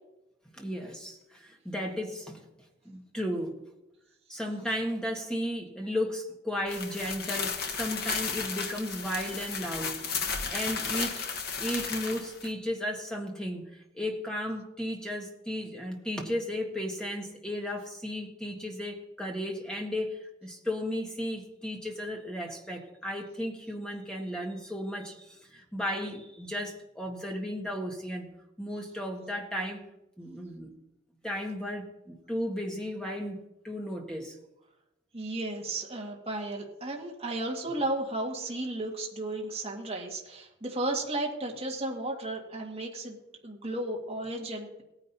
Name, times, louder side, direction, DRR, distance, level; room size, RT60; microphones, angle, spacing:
voice 1, 0.5-2.4 2.8-3.6 4.3-10.0 10.5-11.3 11.6-28.3 28.6-29.8 30.2-30.8 31.2-34.4, equal, 5° left, 0 dB, 1.6 m, -34 dB
sound 1, 6.7-12.5, left 5 dB, 55° left, 1.2 m, -34 dB
voice 2, 35.1-43.2 43.4-44.8, right 2 dB, 30° right, -2 dB, 1.9 m, -34 dB
17.5 x 9.9 x 2.8 m, 0.90 s
head